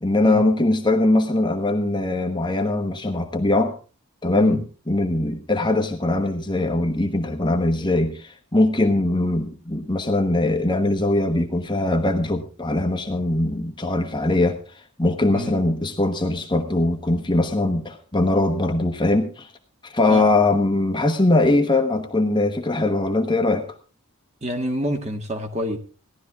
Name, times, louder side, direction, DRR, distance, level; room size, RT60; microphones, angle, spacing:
voice 1, 0.0-3.7 4.2-19.5 19.8-23.6, left 2 dB, 20° left, 1.1 m, -21 dB
voice 2, 24.4-25.8, equal, 30° right, 1.7 m, -27 dB
17.5 x 12.0 x 3.6 m
head